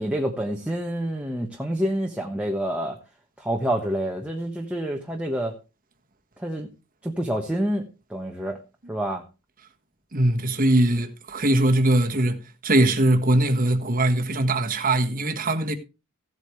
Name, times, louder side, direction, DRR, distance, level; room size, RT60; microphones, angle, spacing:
voice 1, 0.0-3.0 3.4-5.5 6.4-6.7 7.0-8.6 8.9-9.2, right 1 dB, 5° right, 1.2 m, -27 dB
voice 2, 10.1-15.7, right 1 dB, 40° right, 1.5 m, -21 dB
16.0 x 8.3 x 3.2 m
head